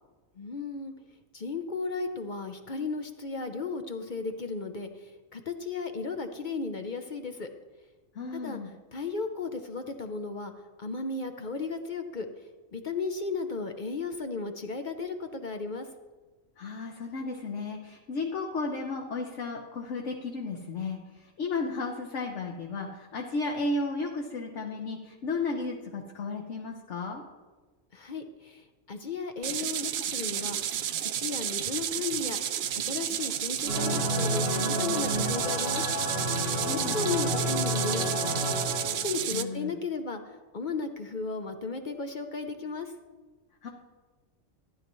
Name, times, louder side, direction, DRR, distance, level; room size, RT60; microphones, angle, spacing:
voice 1, 0.4-0.9 1.3-7.5 8.3-8.6 8.9-10.5 10.8-12.3 12.7-15.9 27.9-30.7 31.0-32.4 32.9-35.9 36.8-38.5 39.0-42.9, left 4 dB, 45° left, 6 dB, 0.7 m, -35 dB
voice 2, 8.1-8.7 16.6-21.0 21.4-27.2 36.6-37.0 39.3-39.7 43.6-43.7, left 3 dB, 65° left, 0 dB, 1.2 m, -33 dB
sound 1, 29.4-39.4, right 10 dB, 65° right, 0.7 m, -32 dB
sound 2, 33.7-39.1, equal, 90° right, 4.7 m, -30 dB
14.0 x 10.5 x 3.1 m, 1.3 s
omnidirectional pair, 1.4 m